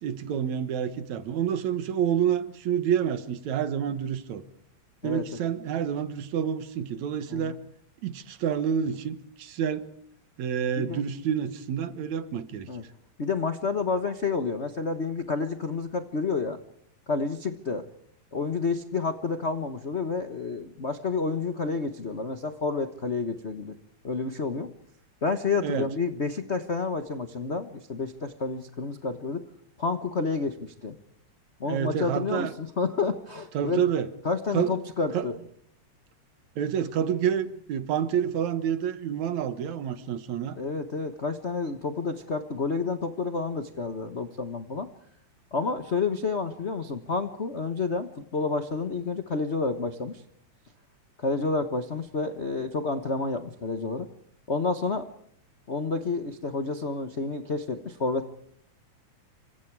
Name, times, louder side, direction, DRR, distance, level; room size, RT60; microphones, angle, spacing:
voice 1, 0.0-4.4 5.0-7.6 8.0-9.9 10.4-12.7 25.6-25.9 31.6-32.5 33.5-34.1 34.5-34.7 35.1-35.3 36.6-40.6, right 8 dB, 70° right, 12 dB, 2.7 m, -28 dB
voice 2, 13.2-16.6 17.1-17.9 18.3-23.7 24.0-24.7 25.2-29.4 29.8-31.0 31.6-33.8 34.2-35.4 40.6-44.9 45.5-50.2 51.2-54.1 54.5-55.1 55.7-58.3, left 4 dB, 75° left, 9 dB, 0.6 m, -29 dB
29.0 x 25.0 x 4.8 m, 0.65 s
omnidirectional pair, 3.4 m